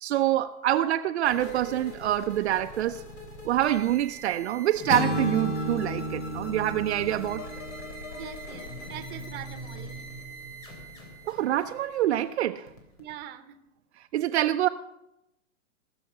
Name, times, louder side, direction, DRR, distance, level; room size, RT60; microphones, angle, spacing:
voice 1, 0.0-3.0 3.5-7.5 11.3-12.7 14.1-14.7, right 12 dB, 55° right, 0.6 m, -26 dB
sound 1, 1.2-13.1, left 1 dB, 80° left, 3.6 m, -42 dB
sound 2, 4.9-8.9, equal, 25° left, 1.4 m, -33 dB
voice 2, 8.1-10.1 13.0-13.6, right 11 dB, 25° right, 1.0 m, -43 dB
19.5 x 7.0 x 5.6 m
hypercardioid pair, 135°, 39 cm